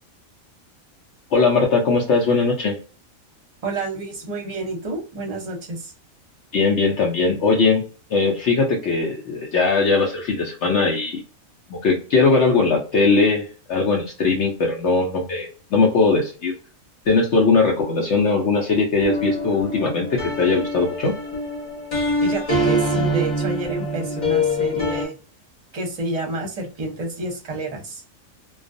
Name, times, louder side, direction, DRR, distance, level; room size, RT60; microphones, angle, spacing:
voice 1, 1.3-2.8 6.5-7.8 8.1-11.2 11.7-16.5 17.1-21.2, left 4 dB, 65° left, 0 dB, 0.8 m, -20 dB
voice 2, 3.6-5.9 22.2-25.1 25.7-28.0, right 2 dB, 35° right, 1 dB, 0.7 m, -29 dB
sound 1, 19.0-25.0, equal, 40° left, 1.0 m, -24 dB
2.3 x 2.3 x 2.5 m, 0.37 s
omnidirectional pair, 1.4 m